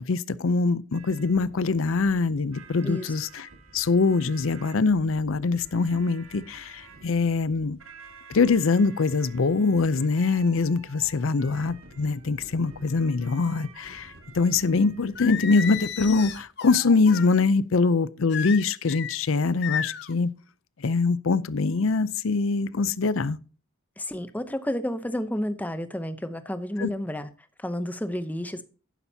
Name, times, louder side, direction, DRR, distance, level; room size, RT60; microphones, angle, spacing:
voice 1, 0.0-3.5 3.7-7.8 8.3-20.3 20.8-23.4 26.8-26.9, left 4 dB, 70° left, 0.6 m, -23 dB
sound 1, 0.9-16.4, right 3 dB, 85° right, 2.1 m, -50 dB
voice 2, 2.8-3.1 24.0-27.3 27.6-28.6, left 1 dB, 10° left, 0.7 m, -31 dB
Singing, 15.2-17.3 18.3-19.2 19.6-20.1, left 9 dB, 55° left, 0.9 m, -33 dB
11.5 x 10.0 x 2.8 m
head